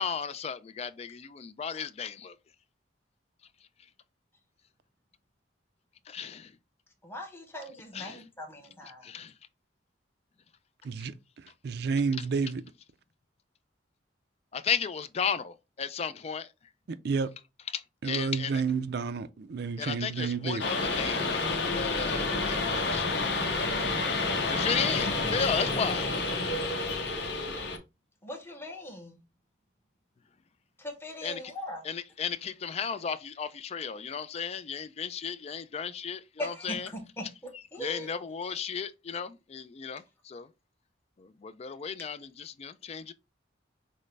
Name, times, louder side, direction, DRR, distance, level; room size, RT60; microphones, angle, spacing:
voice 1, 0.0-2.3 6.1-6.5 7.9-8.2 9.0-9.3 14.5-16.5 17.7-18.6 19.8-23.1 24.1-26.1 31.2-31.4 31.8-36.9 37.8-40.5 41.2-43.1, left 6 dB, 35° left, 0.3 m, -34 dB
voice 2, 7.0-9.1 28.2-29.2 30.8-31.9 36.4-38.1, left 1 dB, 10° left, 0.9 m, -40 dB
voice 3, 10.8-12.6 16.9-17.3 18.0-20.7, right 5 dB, 55° right, 0.4 m, -30 dB
sound 1, 20.6-27.8, left 3 dB, 60° left, 1.0 m, -29 dB
6.3 x 2.1 x 3.3 m
head